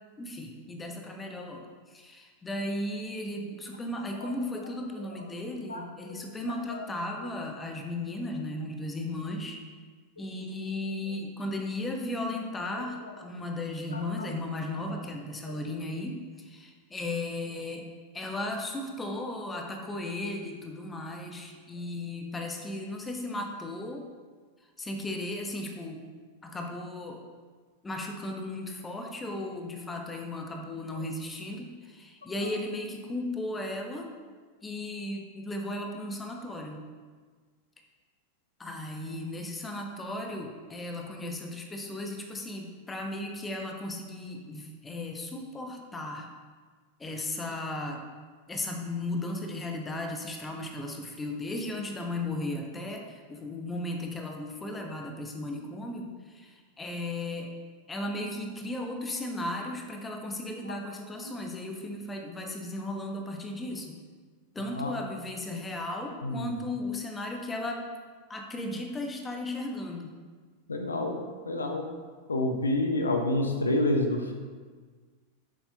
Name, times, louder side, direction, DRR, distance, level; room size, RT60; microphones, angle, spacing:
voice 1, 0.2-9.6 10.2-17.9 18.1-24.1 24.8-26.0 26.4-27.2 27.8-34.1 34.6-36.8 38.6-46.3 47.0-48.0 48.5-57.5 57.9-64.0 64.5-67.9 68.3-70.1, left 1 dB, 15° left, 2 dB, 1.0 m, -36 dB
voice 2, 5.7-6.1 13.9-14.3 15.5-15.6 60.7-60.8 61.2-61.3 64.8-64.9 66.2-66.6 70.7-71.2 71.5-71.9 72.3-74.3, left 1 dB, 75° left, 4 dB, 0.8 m, -29 dB
9.0 x 7.1 x 2.9 m, 1.5 s
figure-of-eight pair, 90°, 0 cm